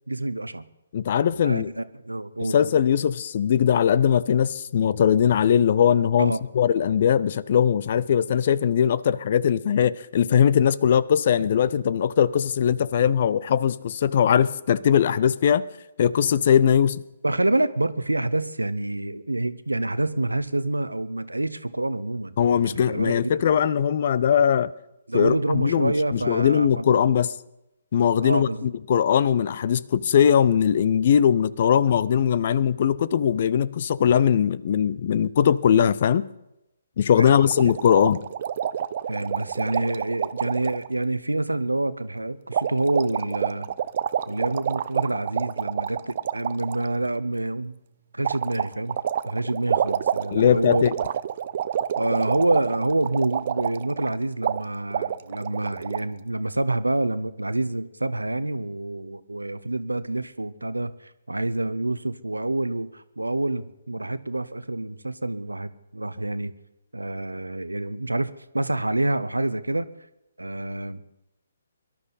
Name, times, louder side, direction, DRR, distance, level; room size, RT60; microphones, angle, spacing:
voice 1, 0.1-0.6 1.4-2.6 6.2-6.4 17.2-22.3 22.6-23.4 25.1-27.0 28.2-28.7 37.2-37.7 39.1-43.7 44.3-47.8 48.1-49.0 49.2-50.8 52.0-66.6 66.9-69.9 70.4-71.0, right 2 dB, 85° right, 0.8 m, -27 dB
voice 2, 0.9-1.7 2.4-15.7 16.0-17.0 22.4-24.7 25.1-27.3 27.9-36.3 37.0-38.2 50.3-50.9, left 8 dB, 45° left, 0.5 m, -20 dB
sound 1, 37.2-40.9 42.5-46.8 48.2-54.1 54.4-54.6 54.9-56.0, right 9 dB, 45° right, 0.5 m, -28 dB
23.5 x 12.0 x 4.1 m
figure-of-eight pair, 135°, 0 cm